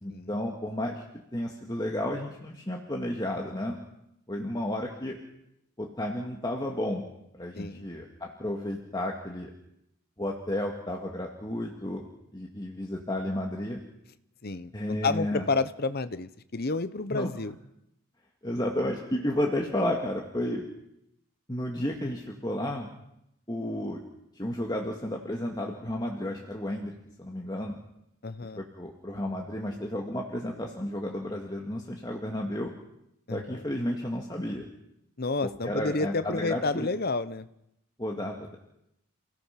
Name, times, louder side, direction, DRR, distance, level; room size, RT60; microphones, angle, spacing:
voice 1, 0.0-1.0 1.3-3.8 4.3-5.2 5.8-7.1 7.4-9.5 10.2-13.8 14.7-15.4 17.1-17.3 18.4-20.6 21.5-22.9 23.5-24.0 24.4-27.8 28.6-32.7 33.3-34.7 35.6-36.9 38.0-38.6, left 1 dB, 20° left, 0 dB, 2.0 m, -32 dB
voice 2, 14.4-17.5 28.2-28.6 33.3-33.6 35.2-37.5, left 3 dB, 45° left, 14 dB, 0.9 m, -30 dB
29.0 x 17.5 x 5.9 m, 0.83 s
head